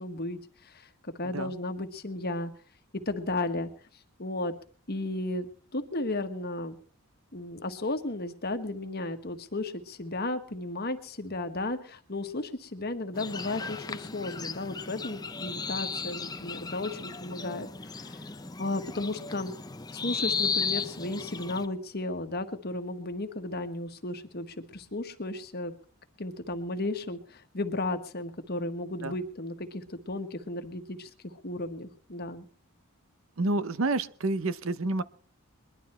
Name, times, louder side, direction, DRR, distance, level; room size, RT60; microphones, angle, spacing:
voice 1, 0.0-2.5 2.9-3.7 4.2-4.5 4.9-6.8 7.3-17.7 17.9-18.2 18.6-19.5 19.9-25.7 26.2-32.4, left 2 dB, 45° left, 7 dB, 1.5 m, -34 dB
sound 1, 13.1-21.7, left 5 dB, 15° left, 0.6 m, -35 dB
voice 2, 33.4-35.0, right 2 dB, 60° right, 15 dB, 0.8 m, -28 dB
21.5 x 12.0 x 4.4 m, 0.43 s
head